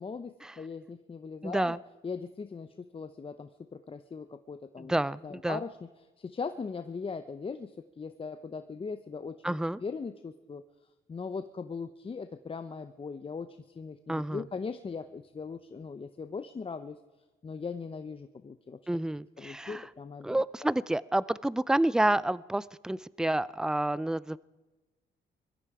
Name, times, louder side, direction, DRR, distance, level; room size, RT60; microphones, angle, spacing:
voice 1, 0.0-1.8 2.0-4.9 5.2-5.8 6.2-9.5 9.8-10.6 11.1-17.0 17.4-18.8 19.4-20.4, left 5 dB, 25° left, 10 dB, 0.8 m, -39 dB
voice 2, 1.4-1.8 4.8-5.6 9.4-9.8 14.1-14.4 18.9-19.8 20.2-24.4, right 1 dB, 5° right, 20 dB, 0.4 m, -29 dB
22.0 x 13.5 x 4.9 m, 1.2 s
cardioid pair, 90°, 20 cm